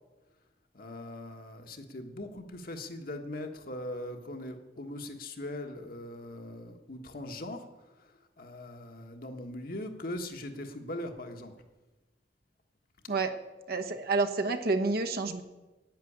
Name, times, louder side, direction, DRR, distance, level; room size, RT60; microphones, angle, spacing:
voice 1, 0.7-11.5, left 1 dB, 55° left, 4 dB, 1.4 m, -41 dB
voice 2, 13.7-15.4, right 3 dB, 60° right, 6 dB, 1.1 m, -29 dB
10.5 x 9.2 x 8.6 m, 1.1 s
head